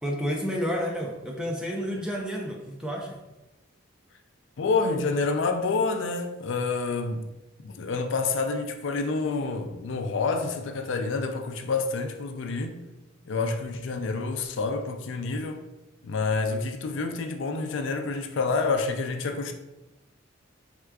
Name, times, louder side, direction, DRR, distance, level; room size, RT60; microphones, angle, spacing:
voice 1, 0.0-3.2, equal, 5° right, 0.5 m, -30 dB
voice 2, 4.6-7.3 7.6-12.8 13.3-15.6 16.0-19.5, left 4 dB, 65° left, 0.4 m, -28 dB
4.7 x 3.6 x 2.3 m
head